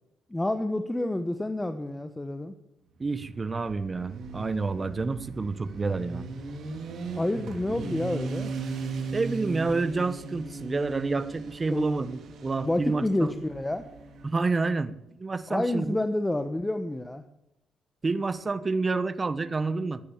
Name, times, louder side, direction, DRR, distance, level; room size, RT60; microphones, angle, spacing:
voice 1, 0.3-2.5 7.1-8.5 11.7-11.9 12.6-13.9 15.5-17.2, left 1 dB, 10° left, 9 dB, 1.0 m, -29 dB
voice 2, 3.0-6.2 9.1-13.3 14.2-14.9 15.2-16.0 18.0-20.0, right 3 dB, 30° right, 14 dB, 1.1 m, -29 dB
Motorcycle, 3.0-14.7, right 4 dB, 65° right, 3.2 m, -38 dB
15.5 x 10.0 x 7.2 m, 0.86 s
cardioid pair, 90°, 0 cm